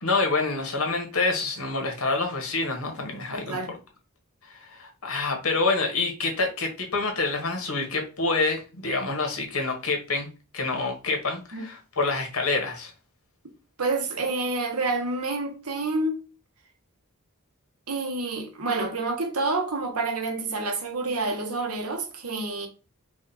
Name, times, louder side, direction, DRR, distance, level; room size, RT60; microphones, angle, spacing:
voice 1, 0.0-3.6 4.4-10.3 10.5-12.9, left 3 dB, 75° left, 1.5 m, -27 dB
voice 2, 3.3-3.7 11.5-11.6 13.8-16.2 17.9-22.7, right 3 dB, 85° right, 1.3 m, -28 dB
5.1 x 2.5 x 4.1 m
head